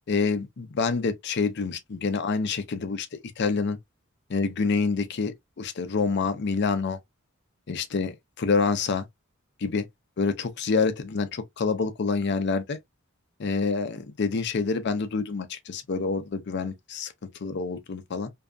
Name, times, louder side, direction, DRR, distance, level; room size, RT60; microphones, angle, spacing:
voice 1, 0.1-3.8 4.3-7.0 7.7-9.1 9.6-9.9 10.2-12.8 13.4-17.1 17.4-18.3, left 4 dB, 55° left, 0.5 m, -27 dB
2.7 x 2.4 x 2.3 m
head